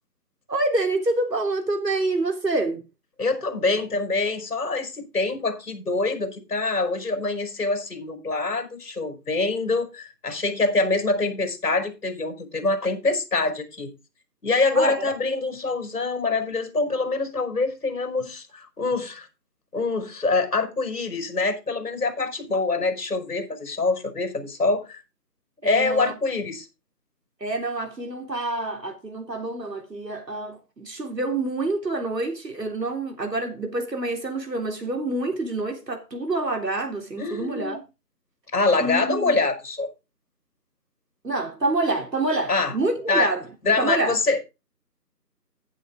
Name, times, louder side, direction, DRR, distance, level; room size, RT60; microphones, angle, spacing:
voice 1, 0.5-2.8 14.8-15.1 25.6-26.1 27.4-37.8 38.8-39.4 41.2-44.1, right 2 dB, 80° right, 3.7 m, -27 dB
voice 2, 3.2-13.9 14.4-19.3 19.7-25.0 25.6-26.7 37.2-37.8 38.5-39.9 42.5-42.7 43.1-43.3 43.6-44.4, left 3 dB, 60° left, 5.2 m, -25 dB
11.0 x 9.7 x 3.7 m
figure-of-eight pair, 165°, 49 cm